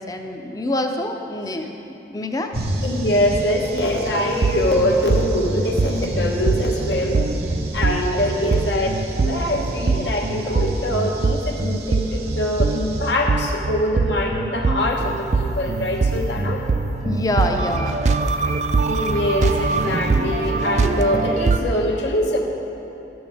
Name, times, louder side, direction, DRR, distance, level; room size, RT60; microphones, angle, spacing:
voice 1, 0.0-2.5 8.1-8.7 17.0-18.1, left 1 dB, 20° left, 4 dB, 0.5 m, -26 dB
sound 1, 2.5-13.1, right 1 dB, 60° right, 0.7 m, -31 dB
voice 2, 2.8-7.4 7.7-8.9 9.2-16.6 18.8-22.4, left 1 dB, 75° left, 1 dB, 1.1 m, -23 dB
sound 2, 4.4-21.6, right 3 dB, 40° right, 0.3 m, -22 dB
12.0 x 8.7 x 3.5 m, 3.0 s
head